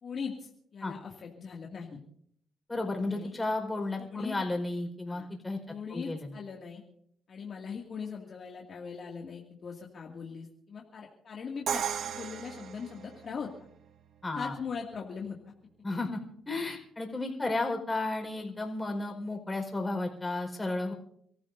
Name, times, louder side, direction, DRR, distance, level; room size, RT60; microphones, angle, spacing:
voice 1, 0.0-2.0 3.1-3.3 4.0-4.4 5.1-5.3 5.7-6.8 7.3-13.5 14.3-15.4, left 6 dB, 50° left, -1 dB, 2.3 m, -40 dB
voice 2, 2.7-5.6 5.9-6.3 14.2-14.5 15.8-20.9, left 2 dB, 15° left, 2 dB, 4.7 m, -33 dB
Crash cymbal, 11.7-13.6, right 9 dB, 65° right, 0.8 m, -35 dB
28.5 x 14.5 x 2.7 m, 0.66 s
cardioid pair, 90°, 0 cm